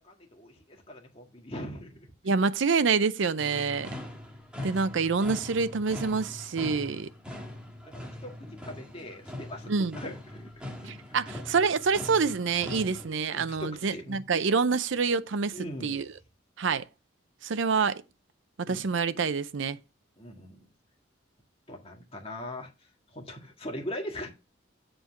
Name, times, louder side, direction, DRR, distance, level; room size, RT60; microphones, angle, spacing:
voice 1, 0.0-2.1 3.6-3.8 7.8-8.3 8.6-11.0 12.7-12.9 13.3-14.2 15.5-15.9 18.7-18.9 20.2-20.7 21.7-22.7 23.1-24.3, left 1 dB, 30° left, 1.9 m, -41 dB
voice 2, 2.2-3.9 4.6-7.1 9.7-10.0 10.9-16.1 16.6-16.8 17.4-18.0 18.7-19.8, right 5 dB, 75° right, 0.6 m, -27 dB
sound 1, 3.4-13.1, left 1 dB, 5° right, 1.5 m, -42 dB
7.9 x 4.4 x 5.8 m
head